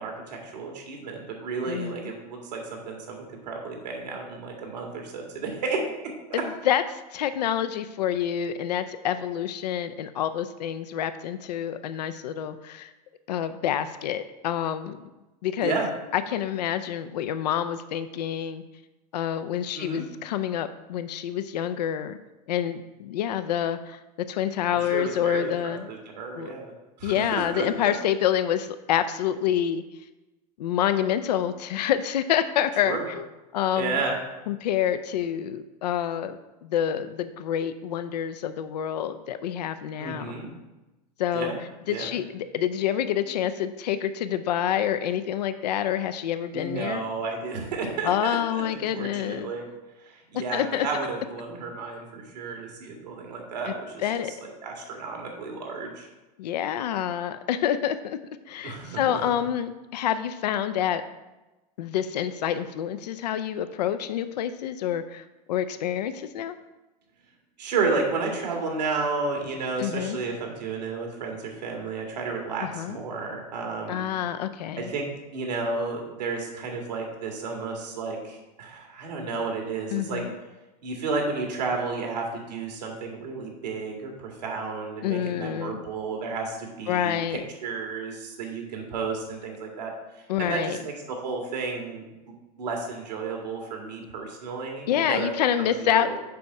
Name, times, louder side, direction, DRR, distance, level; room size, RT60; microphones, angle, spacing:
voice 1, 0.0-6.4 15.6-15.9 19.7-20.1 24.7-26.7 27.0-27.9 32.8-33.1 33.8-34.2 40.0-40.5 41.3-41.6 41.9-42.1 46.5-49.6 50.1-54.0 54.6-56.1 58.6-59.2 67.6-74.1 74.8-75.1 75.3-80.2 80.8-89.9 90.4-92.0 92.6-95.3 95.6-95.7 96.0-96.2, right 4 dB, 80° right, 1 dB, 2.1 m, -32 dB
voice 2, 1.6-2.1 6.3-12.9 13.3-15.0 15.4-15.8 16.1-18.6 19.1-22.2 22.5-24.0 24.3-25.9 26.4-26.5 27.0-29.8 30.6-33.3 33.5-34.0 34.5-40.4 41.2-41.5 41.9-47.1 48.0-49.5 50.5-50.9 53.7-54.3 56.4-58.2 58.5-61.0 61.8-66.6 69.8-70.2 72.6-73.0 73.9-74.9 79.9-80.4 85.0-85.8 86.9-87.4 90.3-90.8 94.9-96.2, left 10 dB, 80° left, 11 dB, 0.5 m, -27 dB
6.9 x 5.2 x 4.7 m, 1.0 s
hypercardioid pair, 100°, 21 cm